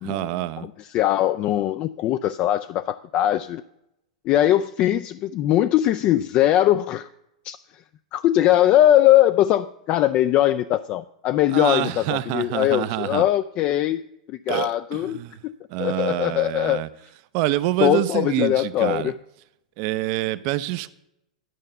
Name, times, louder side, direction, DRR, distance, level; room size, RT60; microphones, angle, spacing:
voice 1, 0.0-0.7 11.5-13.2 14.5-15.4 15.7-16.9 17.3-19.1 19.8-20.9, right 16 dB, 45° right, 0.6 m, -26 dB
voice 2, 0.6-3.6 4.3-7.1 7.4-7.8 8.1-14.0 14.3-15.2 15.4-15.5 15.8-16.8 17.8-19.2, left 13 dB, 35° left, 0.3 m, -21 dB
11.0 x 5.6 x 6.6 m
hypercardioid pair, 105°, 4 cm